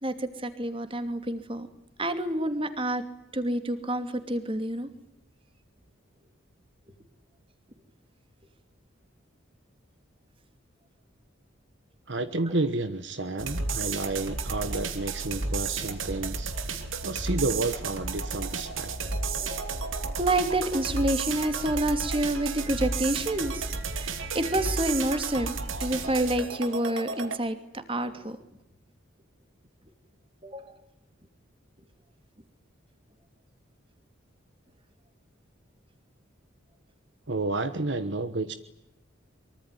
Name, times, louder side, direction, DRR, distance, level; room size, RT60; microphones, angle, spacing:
voice 1, 0.0-1.7 2.0-3.0 3.3-4.9 19.4-19.7 20.2-23.7 23.9-28.4 30.4-30.8, right 1 dB, 25° right, 9 dB, 2.7 m, -28 dB
voice 2, 12.1-16.5 17.0-18.9 19.4-19.5 37.3-38.5, right 2 dB, 60° right, 11 dB, 1.3 m, -30 dB
sound 1, 13.4-27.4, right 4 dB, 80° right, 2.8 m, -32 dB
24.0 x 24.0 x 9.9 m, 0.88 s
head